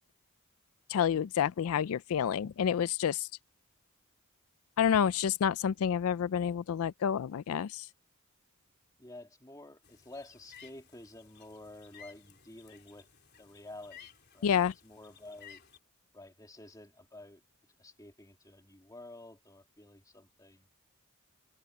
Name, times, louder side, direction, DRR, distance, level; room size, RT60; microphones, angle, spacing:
voice 1, 0.9-3.3 4.8-7.9 14.4-14.7, left 8 dB, 75° left, 0.4 m, -29 dB
voice 2, 9.0-13.1 13.4-14.1 14.3-15.6 16.1-17.4 17.8-20.7, left 1 dB, 15° left, 2.4 m, -50 dB
sound 1, 9.8-15.8, left 8 dB, 50° left, 3.8 m, -56 dB
head